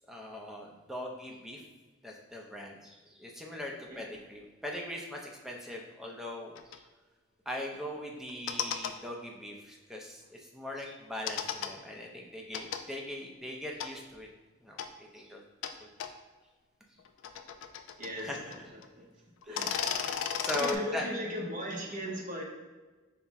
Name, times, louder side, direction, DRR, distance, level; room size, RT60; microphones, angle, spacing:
voice 1, 0.1-1.6 2.0-6.8 7.5-14.3 14.6-15.4 15.8-15.9 18.2-18.4 19.4-21.1, left 1 dB, ahead, -1 dB, 0.5 m, -40 dB
sound 1, 6.6-6.8 8.3-8.9 11.3-11.7 12.5-12.8 13.8-13.9 14.8-14.9 15.6-15.7 16.0-16.1 17.0-18.6 18.8-18.9 19.4-20.8, left 8 dB, 85° left, 0.3 m, -34 dB
voice 2, 18.0-19.1 19.5-19.8 20.5-22.4, equal, 45° right, -1 dB, 0.8 m, -37 dB
5.5 x 2.1 x 3.4 m, 1.2 s
head